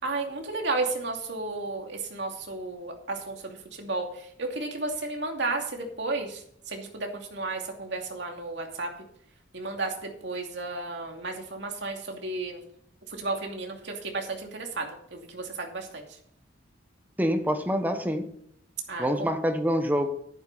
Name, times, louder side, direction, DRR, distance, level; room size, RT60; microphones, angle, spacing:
voice 1, 0.0-8.9 9.5-12.6 13.1-16.2 18.9-19.3, right 3 dB, 65° right, 2 dB, 2.6 m, -33 dB
voice 2, 17.2-18.3 19.0-20.2, equal, 10° right, 7 dB, 1.2 m, -26 dB
11.5 x 9.5 x 4.2 m, 0.69 s
head